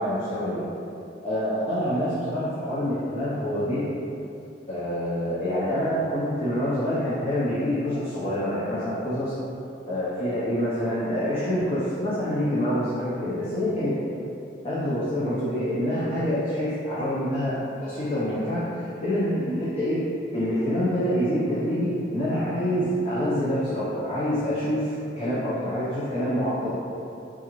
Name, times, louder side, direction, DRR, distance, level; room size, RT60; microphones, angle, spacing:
voice 1, 0.0-0.6 1.2-3.8 4.7-9.3 9.9-14.0 14.6-20.0 20.3-26.7, equal, 35° left, -10 dB, 0.5 m, -26 dB
3.6 x 2.4 x 2.9 m, 2.7 s
head